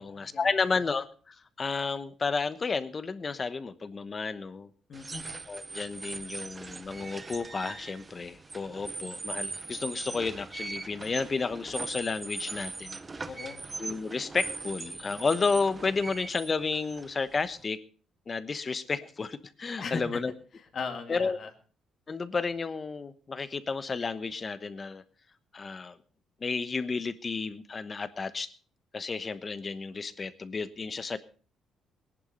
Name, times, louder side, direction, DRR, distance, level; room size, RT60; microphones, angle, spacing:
voice 1, 0.0-4.7 5.5-13.3 13.8-17.8 18.3-20.3 21.1-21.4 22.1-25.0 25.5-26.0 26.4-28.5 28.9-31.2, left 4 dB, 30° left, 13 dB, 1.1 m, -32 dB
voice 2, 4.9-5.3 13.2-13.7 19.8-20.2 20.7-21.5, left 5 dB, 50° left, 4 dB, 2.2 m, -37 dB
sound 1, 4.9-17.7, right 3 dB, 25° right, 0.6 m, -40 dB
18.5 x 11.0 x 5.2 m, 0.41 s
cardioid pair, 110°, 0 cm